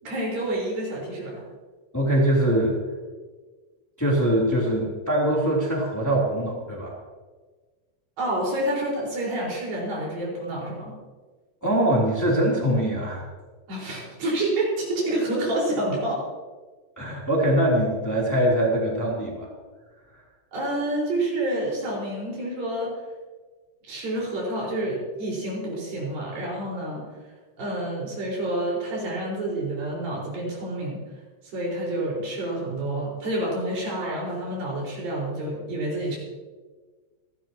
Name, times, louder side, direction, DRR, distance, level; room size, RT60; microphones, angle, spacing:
voice 1, 0.0-1.4 8.2-10.9 13.7-16.2 20.5-22.9 23.8-27.0 27.6-31.0 31.5-36.2, right 1 dB, 80° right, -4 dB, 6.8 m, -28 dB
voice 2, 1.9-2.8 4.0-6.9 11.6-13.2 17.0-19.5, right 1 dB, 5° left, -4 dB, 2.8 m, -22 dB
28.5 x 11.5 x 3.0 m, 1.4 s
omnidirectional pair, 4.1 m